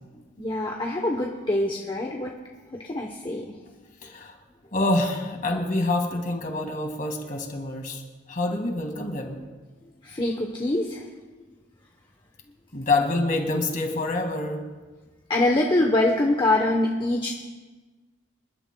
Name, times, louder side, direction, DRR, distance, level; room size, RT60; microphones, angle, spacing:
voice 1, 0.4-2.3 2.7-3.6 10.0-11.1 15.3-17.3, left 1 dB, 25° left, 0 dB, 0.9 m, -24 dB
voice 2, 4.0-4.4 4.7-8.0 8.3-9.4 12.7-14.6, left 2 dB, 40° left, 2 dB, 2.0 m, -26 dB
27.5 x 12.0 x 2.3 m, 1.3 s
head